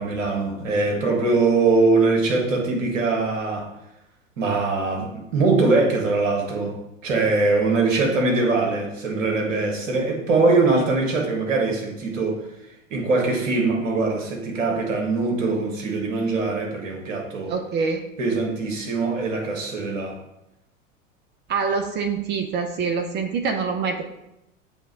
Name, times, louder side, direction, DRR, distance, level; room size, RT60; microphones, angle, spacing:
voice 1, 0.0-3.7 4.4-6.8 7.0-12.4 12.9-17.5 18.2-20.2, right 3 dB, 70° right, 1 dB, 1.6 m, -22 dB
voice 2, 17.5-18.0 21.5-24.0, right 5 dB, 25° right, 5 dB, 0.5 m, -25 dB
7.2 x 3.0 x 4.6 m, 0.87 s
figure-of-eight pair, 85°, 40 cm